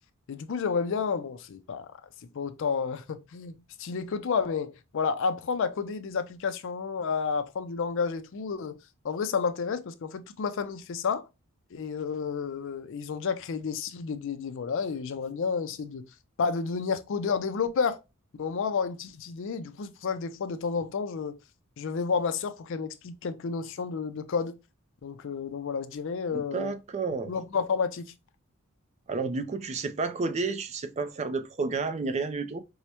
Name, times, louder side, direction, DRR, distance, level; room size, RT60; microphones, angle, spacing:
voice 1, 0.3-1.9 2.3-8.8 9.0-11.2 11.7-16.1 16.4-18.0 18.4-21.4 21.8-24.5 25.0-26.7 27.2-28.1, left 5 dB, 60° left, 0.4 m, -30 dB
voice 2, 26.3-27.3 29.1-32.6, right 4 dB, 30° right, 0.3 m, -31 dB
4.6 x 2.1 x 2.8 m
head